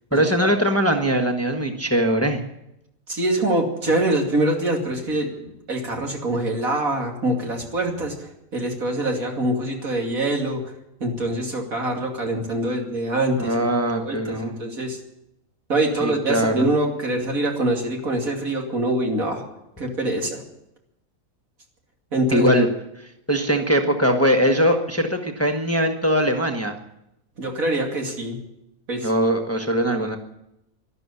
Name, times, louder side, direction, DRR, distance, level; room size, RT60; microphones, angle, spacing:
voice 1, 0.1-2.4 13.4-14.6 16.0-16.7 22.3-22.7 23.3-26.7 29.0-30.2, equal, 10° left, 4 dB, 1.3 m, -21 dB
voice 2, 3.1-8.1 8.5-10.6 11.0-13.5 13.9-15.0 15.7-19.4 19.8-20.4 22.1-22.5 27.4-28.4 28.9-29.1, right 1 dB, 75° right, 1 dB, 3.1 m, -24 dB
12.5 x 12.0 x 9.7 m, 0.86 s
omnidirectional pair, 1.5 m